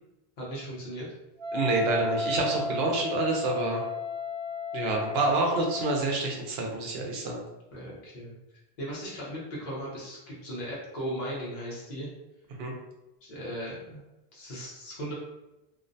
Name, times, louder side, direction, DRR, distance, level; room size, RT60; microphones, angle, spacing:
voice 1, 0.4-1.1 7.7-8.3 8.8-12.1 13.2-14.0 14.3-15.1, equal, 50° left, -6 dB, 0.8 m, -37 dB
Wind instrument woodwind instrument, 1.4-6.1, left 3 dB, 50° right, 0.3 m, -33 dB
voice 2, 1.5-3.8 4.7-7.4 12.6-12.7, right 2 dB, 75° right, 0 dB, 0.8 m, -28 dB
2.5 x 2.1 x 2.5 m, 0.96 s
omnidirectional pair, 1.0 m